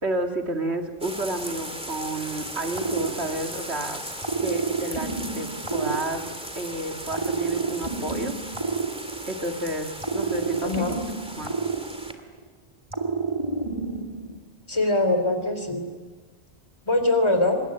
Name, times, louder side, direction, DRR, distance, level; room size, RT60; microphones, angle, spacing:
voice 1, 0.0-4.0 4.4-6.2 6.6-8.3 9.3-11.0 11.4-11.5, right 1 dB, 85° right, 4 dB, 2.8 m, -31 dB
sound 1, 1.0-12.1, equal, 5° right, 2.2 m, -37 dB
sound 2, 2.7-3.7 4.2-6.6 7.1-9.5 10.0-12.4 12.9-14.4, right 4 dB, 25° right, 2.7 m, -29 dB
voice 2, 10.6-11.0 14.7-15.9 16.9-17.6, left 2 dB, 25° left, 6 dB, 3.5 m, -22 dB
25.0 x 21.5 x 10.0 m, 1.3 s
omnidirectional pair, 1.1 m